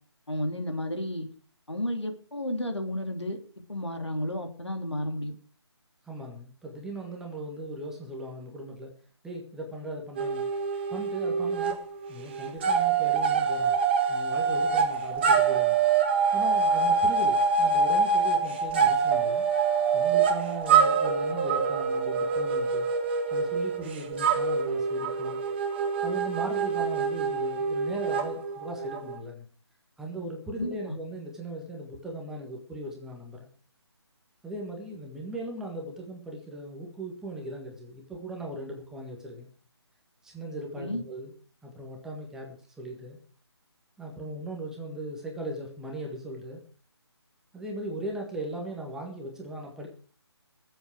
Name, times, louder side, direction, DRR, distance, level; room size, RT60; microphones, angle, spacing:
voice 1, 0.3-1.3 1.7-3.4 3.7-5.4 30.6-30.8 40.8-41.0, left 1 dB, 80° left, 4 dB, 3.1 m, -32 dB
voice 2, 6.0-8.9 9.2-10.5 10.9-13.8 14.1-15.8 16.3-19.5 19.9-22.9 23.3-25.4 26.0-29.5 30.0-33.5 34.4-39.5 40.2-41.3 41.6-43.2 44.0-46.6 47.5-49.9, right 1 dB, 5° right, 0 dB, 1.6 m, -38 dB
sound 1, 10.2-11.8 12.1-29.2, right 5 dB, 25° right, 1.3 m, -25 dB
20.0 x 7.9 x 4.9 m, 0.41 s
figure-of-eight pair, 150°, 14 cm